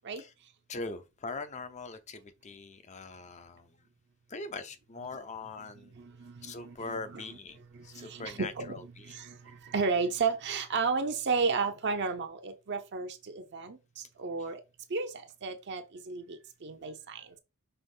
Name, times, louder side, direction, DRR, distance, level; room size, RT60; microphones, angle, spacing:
voice 1, 0.7-3.9 4.3-6.0 6.4-9.2 14.4-14.5, left 3 dB, 35° left, 0.7 m, -42 dB
voice 2, 6.2-6.7 8.0-8.7 9.1-9.3 9.7-13.8 14.2-14.6 14.9-15.1 15.4-17.2, right 4 dB, 55° right, 0.7 m, -32 dB
5.6 x 3.1 x 5.4 m
head